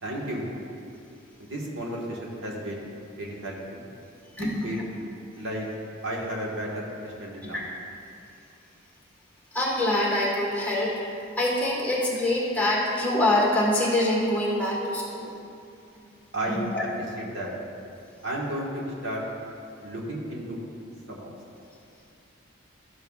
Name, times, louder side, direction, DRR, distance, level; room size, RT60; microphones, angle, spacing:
voice 1, 0.0-0.5 1.4-2.8 3.2-3.8 4.6-4.8 5.3-5.7 6.0-7.6 16.3-16.6 17.2-17.5 18.2-19.2 19.8-20.6 21.1-21.3, right 1 dB, 70° right, -3 dB, 1.5 m, -33 dB
voice 2, 4.3-4.8 7.4-7.6 9.5-11.0 11.4-15.3 16.7-16.8, left 1 dB, 10° left, -5 dB, 1.5 m, -25 dB
12.5 x 7.3 x 2.4 m, 2.6 s
head